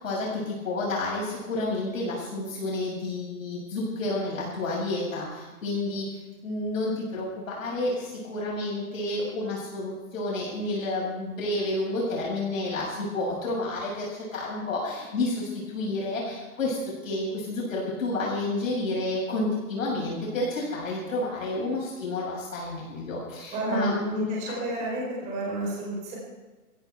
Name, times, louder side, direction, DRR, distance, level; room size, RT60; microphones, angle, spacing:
voice 1, 0.0-6.1 6.4-24.2, left 2 dB, 60° left, -5 dB, 7.1 m, -30 dB
voice 2, 23.5-26.2, right 1 dB, 15° right, -4 dB, 4.2 m, -30 dB
17.5 x 15.5 x 4.6 m, 1.2 s
hypercardioid pair, 175°, 44 cm